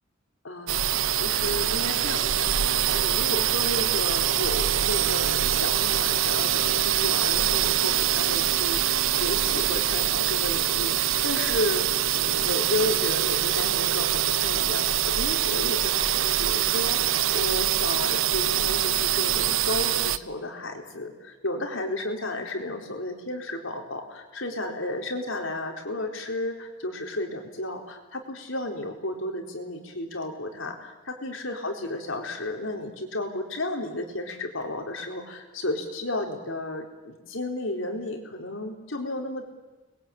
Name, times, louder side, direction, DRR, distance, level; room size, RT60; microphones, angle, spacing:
voice 1, 0.4-11.9 12.1-39.5, left 1 dB, 75° left, 2 dB, 4.3 m, -33 dB
sound 1, 0.7-20.2, right 11 dB, 80° right, 0.8 m, -24 dB
29.5 x 22.0 x 8.9 m, 1.2 s
head